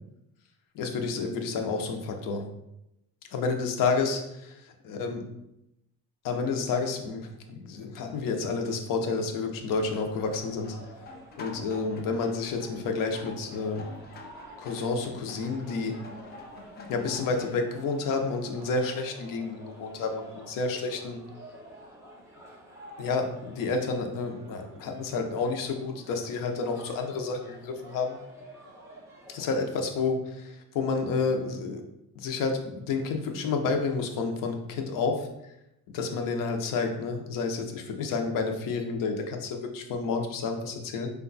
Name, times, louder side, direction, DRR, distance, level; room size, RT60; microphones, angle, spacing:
voice 1, 0.7-2.4 3.3-4.4 4.9-5.2 6.2-10.8 11.4-13.8 14.6-16.0 16.9-21.2 23.0-28.2 29.3-31.8 32.2-35.3 35.9-41.1, left 4 dB, 60° left, 4 dB, 0.8 m, -30 dB
sound 1, 9.5-17.5, left 3 dB, 30° left, 0.4 m, -47 dB
sound 2, 10.1-29.9, right 1 dB, 5° right, 0.6 m, -50 dB
5.1 x 2.3 x 3.9 m, 0.85 s
cardioid pair, 170°, 36 cm